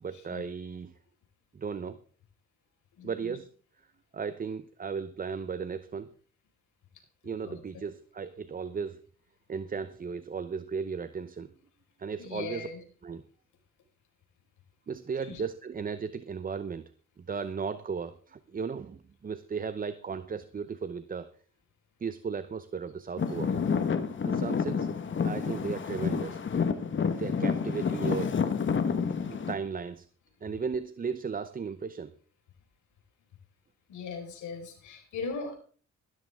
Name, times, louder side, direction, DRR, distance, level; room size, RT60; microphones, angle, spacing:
voice 1, 0.0-0.9 1.5-2.0 3.0-3.5 4.1-6.1 7.2-9.0 9.5-11.5 12.0-12.7 13.0-13.2 14.9-16.8 17.3-21.3 22.0-23.5 24.2-24.9 25.2-26.4 27.2-28.4 29.3-30.1 30.4-32.1, right 6 dB, 30° right, 13 dB, 0.7 m, -35 dB
voice 2, 3.0-3.4 7.4-7.9 12.2-12.8 15.3-15.4 33.9-35.5, left 4 dB, 80° left, 3 dB, 4.7 m, -39 dB
Traffic noise roadway noise / Engine, 23.2-29.5, left 6 dB, 40° left, 1.4 m, -29 dB
15.0 x 12.5 x 3.6 m, 0.43 s
cardioid pair, 90°, 30 cm